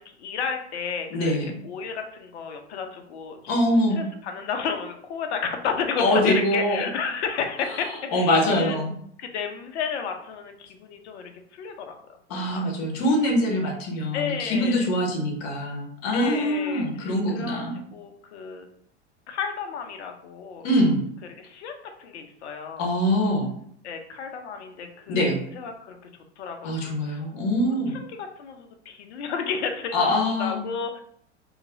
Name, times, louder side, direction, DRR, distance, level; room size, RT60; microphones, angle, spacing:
voice 1, 0.2-1.4 1.6-3.4 4.0-8.8 9.2-12.0 12.3-12.7 14.1-14.9 16.1-16.9 17.3-17.6 17.9-18.7 19.3-20.7 21.4-21.7 22.0-22.9 23.8-26.0 26.4-27.2 27.9-30.1 30.4-31.0, left 6 dB, 70° left, 5 dB, 0.8 m, -32 dB
voice 2, 1.1-1.5 3.5-4.0 6.0-6.9 7.7-8.9 12.3-17.8 20.6-21.0 22.8-23.5 25.1-25.4 26.6-27.9 29.9-30.6, left 1 dB, 45° left, 2 dB, 1.2 m, -24 dB
4.0 x 2.9 x 2.6 m, 0.66 s
hypercardioid pair, 95°, 35 cm